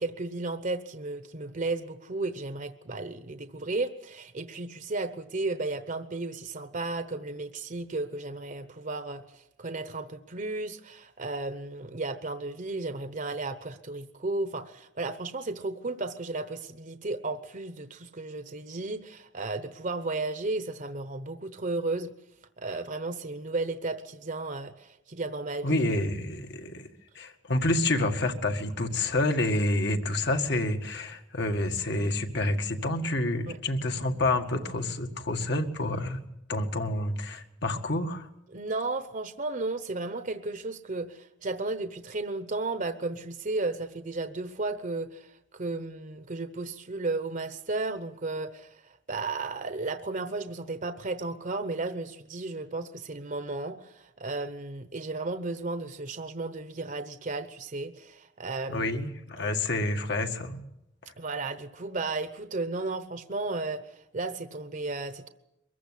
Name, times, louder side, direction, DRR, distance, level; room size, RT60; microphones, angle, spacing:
voice 1, 0.0-22.1 22.6-25.8 33.5-33.6 38.5-58.9 59.4-59.5 61.2-65.3, right 3 dB, 45° right, 10 dB, 1.0 m, -34 dB
voice 2, 25.6-26.9 27.2-36.2 36.5-38.3 58.7-60.6, left 2 dB, 60° left, 6 dB, 2.0 m, -28 dB
23.5 x 15.0 x 9.9 m, 0.85 s
head